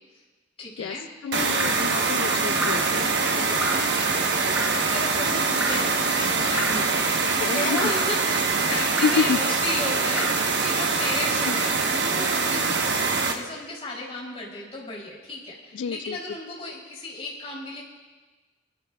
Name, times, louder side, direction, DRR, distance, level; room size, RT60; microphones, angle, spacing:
voice 1, 0.6-1.1 3.3-12.9 13.2-17.8, left 2 dB, 30° left, -4 dB, 3.3 m, -34 dB
voice 2, 1.2-3.1 7.2-7.8 9.0-9.4 11.5-11.6 15.7-16.2, left 6 dB, 85° left, 11 dB, 0.3 m, -28 dB
sound 1, 1.3-13.3, right 4 dB, 65° right, 1.1 m, -24 dB
Drip, 1.6-1.9 2.6-3.0 3.6-4.0 4.6-4.9 5.6-5.9 6.6-6.9 7.8-8.1 9.0-9.3 10.2-10.5 11.4-11.8 12.7-12.8, right 1 dB, 10° right, 1.0 m, -32 dB
25.5 x 12.5 x 2.3 m, 1.3 s
head